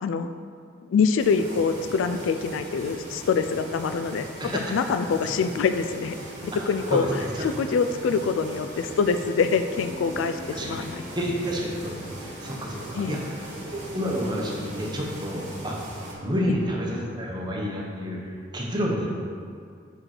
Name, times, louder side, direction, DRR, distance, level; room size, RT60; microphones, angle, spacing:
voice 1, 0.0-0.3 0.9-4.3 4.7-6.2 6.7-11.0 13.0-13.2, left 5 dB, 90° left, 9 dB, 0.3 m, -25 dB
sound 1, 1.2-16.1, right 1 dB, 40° right, 1.4 m, -40 dB
sound 2, 6.1-17.0, right 1 dB, 65° right, 1.0 m, -44 dB
voice 2, 6.9-7.4 10.5-10.8 11.1-16.0 16.2-18.2 18.5-19.1, equal, 25° right, -2 dB, 0.9 m, -29 dB
5.2 x 4.5 x 6.0 m, 2.2 s
head